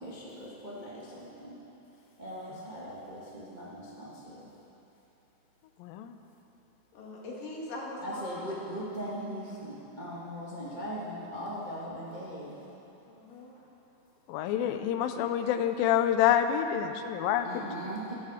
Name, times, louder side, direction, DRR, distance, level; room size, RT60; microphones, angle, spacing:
voice 1, 0.0-1.5 2.2-4.5 8.0-12.6 17.4-18.1, equal, 60° right, -7 dB, 0.4 m, -39 dB
voice 2, 5.8-6.2 14.3-17.7, left 10 dB, 90° left, 8 dB, 2.4 m, -27 dB
voice 3, 6.9-8.5 13.1-13.5, left 2 dB, 70° left, -4 dB, 3.7 m, -41 dB
13.0 x 12.0 x 5.0 m, 3.0 s
omnidirectional pair, 4.1 m